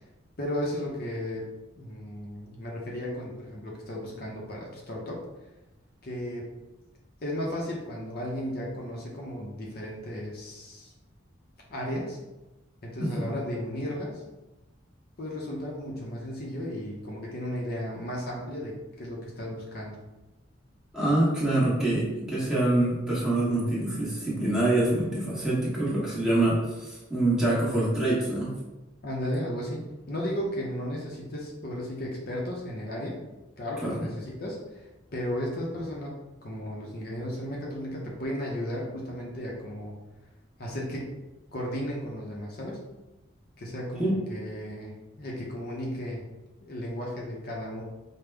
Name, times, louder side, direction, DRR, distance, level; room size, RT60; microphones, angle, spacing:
voice 1, 0.4-1.5 1.8-5.2 6.0-6.5 7.2-10.9 11.7-12.2 12.8-14.2 15.2-20.0 29.0-33.2 33.6-39.9 40.6-41.1 41.5-42.8 43.6-46.2 46.6-47.8, equal, 50° left, -3 dB, 0.7 m, -34 dB
voice 2, 20.9-28.5 33.8-34.1 44.0-44.1, right 1 dB, 5° right, -8 dB, 1.2 m, -25 dB
5.1 x 2.2 x 3.3 m, 1.1 s
head